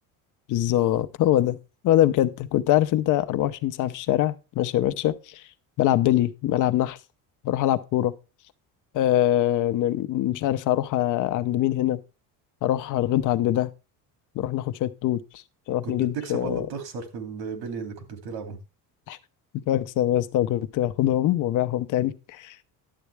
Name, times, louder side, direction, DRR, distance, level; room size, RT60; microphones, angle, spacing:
voice 1, 0.5-1.6 1.8-5.4 5.8-7.0 7.4-8.1 8.9-12.0 12.6-13.7 14.3-15.4 15.7-16.7 19.1-19.2 19.5-22.6, left 13 dB, 55° left, 0.8 m, -23 dB
voice 2, 15.8-18.6, right 5 dB, 90° right, 2.7 m, -34 dB
11.5 x 8.3 x 3.3 m
cardioid pair, 165°, 36 cm